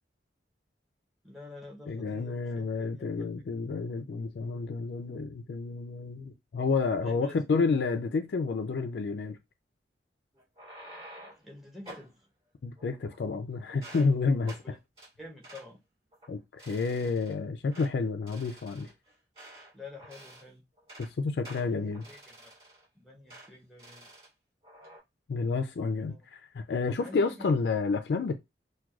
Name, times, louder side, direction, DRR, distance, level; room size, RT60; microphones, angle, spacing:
voice 1, 1.2-3.3 7.0-7.4 11.4-12.2 14.6-14.8 15.2-15.8 19.7-20.6 21.5-22.5 22.9-24.1 26.0-26.2 26.9-27.5, left 2 dB, ahead, 0.8 m, -48 dB
voice 2, 1.9-9.4 12.6-14.8 16.3-18.9 21.0-22.0 25.3-28.4, left 4 dB, 65° left, 0.4 m, -30 dB
sound 1, 10.4-11.5 11.9-12.1 12.8-13.4 13.7-14.1 14.4-14.7 15.0-15.1 15.4-15.7 16.1-16.3 16.6-17.3 17.7-17.9 18.3-19.7 20.0-20.5 20.8-21.1 21.4-22.9 23.3-23.5 23.8-24.3 24.6-25.0, right 1 dB, 35° right, 2.3 m, -49 dB
5.9 x 2.2 x 2.3 m
head